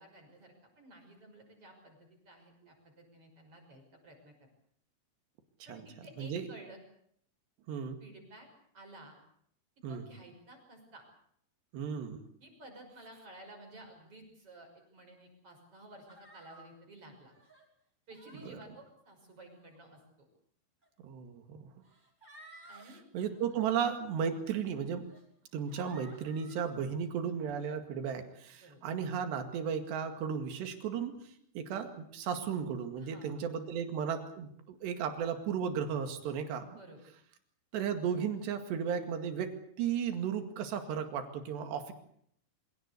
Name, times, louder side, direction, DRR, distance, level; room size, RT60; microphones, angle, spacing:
voice 1, 0.0-4.5 5.7-6.8 8.0-8.5 8.7-9.1 9.9-11.0 12.4-17.3 18.1-20.3 22.7-23.0 28.6-28.8 33.0-33.4 36.7-37.0, right 1 dB, 35° right, 2 dB, 6.8 m, -53 dB
voice 2, 6.2-6.5 7.7-8.0 9.8-10.0 11.7-12.2 18.5-18.6 21.0-21.7 23.1-25.1 25.5-31.2 31.6-36.7 37.7-41.9, right 7 dB, 85° right, 7 dB, 4.3 m, -35 dB
sound 1, 16.1-16.7 17.3-17.6 18.1-18.5 19.4-19.8 20.8-20.9 21.8-22.8 23.3-23.6 24.3-24.4 25.0-25.2 25.7-26.8, right 2 dB, 10° right, 5.8 m, -56 dB
25.0 x 17.5 x 8.3 m, 0.69 s
omnidirectional pair, 4.8 m